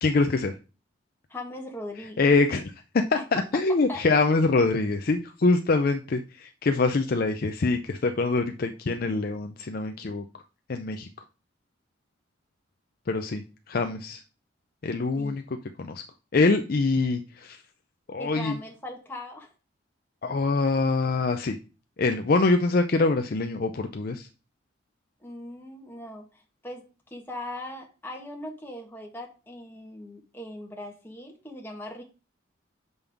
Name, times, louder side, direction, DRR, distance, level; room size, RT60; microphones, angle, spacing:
voice 1, 0.0-0.5 2.2-2.7 3.1-10.2 10.7-11.1 13.1-14.2 14.8-15.4 15.8-16.0 16.3-17.6 18.1-18.6 20.2-21.6 22.0-24.3, left 3 dB, 50° left, 6 dB, 0.4 m, -24 dB
voice 2, 1.3-2.2 3.1-3.6 3.9-4.0 15.2-15.4 18.2-19.5 25.2-32.0, left 1 dB, 10° left, 0 dB, 1.3 m, -40 dB
6.9 x 5.4 x 3.5 m, 0.34 s
head